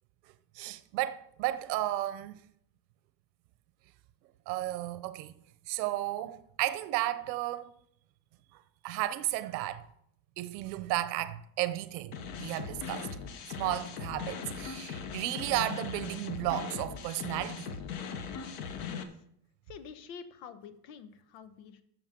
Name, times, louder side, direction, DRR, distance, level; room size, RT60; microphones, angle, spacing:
voice 1, 0.6-2.4 4.5-5.3 5.7-7.7 8.8-9.8 10.4-13.1 13.6-17.7, right 15 dB, 90° right, 0.9 m, -33 dB
sound 1, 12.1-19.0, left 6 dB, 50° left, 1.2 m, -39 dB
voice 2, 19.7-21.8, left 7 dB, 85° left, 1.3 m, -48 dB
12.0 x 7.1 x 5.2 m
cardioid pair, 180°, 49 cm